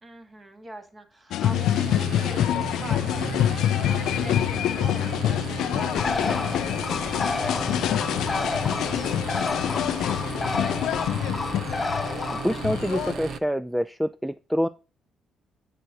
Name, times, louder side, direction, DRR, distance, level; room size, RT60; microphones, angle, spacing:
voice 1, 0.0-8.5 8.8-10.4, right 1 dB, 25° right, 6 dB, 2.1 m, -44 dB
sound 1, 1.3-13.1, left 12 dB, 80° left, 0.4 m, -26 dB
sound 2, 1.5-13.4, right 7 dB, 65° right, 0.7 m, -36 dB
Bird, 6.0-13.4, left 4 dB, 30° left, 0.9 m, -31 dB
voice 2, 12.3-14.7, equal, ahead, 14 dB, 0.4 m, -26 dB
9.0 x 6.3 x 4.0 m, 0.33 s
cardioid pair, 90°, 0 cm